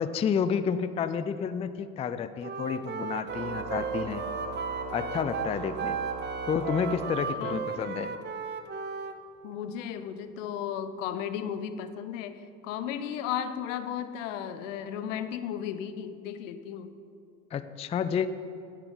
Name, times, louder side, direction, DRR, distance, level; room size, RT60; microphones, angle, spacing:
voice 1, 0.0-4.2 4.9-6.0 6.5-8.1 17.5-18.3, left 7 dB, 20° left, 12 dB, 0.3 m, -30 dB
Wind instrument woodwind instrument, 2.4-9.2, right 6 dB, 30° right, 0.7 m, -35 dB
Organ, 3.3-7.8, right 3 dB, 45° right, 1.4 m, -38 dB
voice 2, 9.4-16.9, left 9 dB, 75° left, 11 dB, 0.7 m, -35 dB
9.7 x 9.4 x 3.8 m, 2.5 s
hypercardioid pair, 65°, 38 cm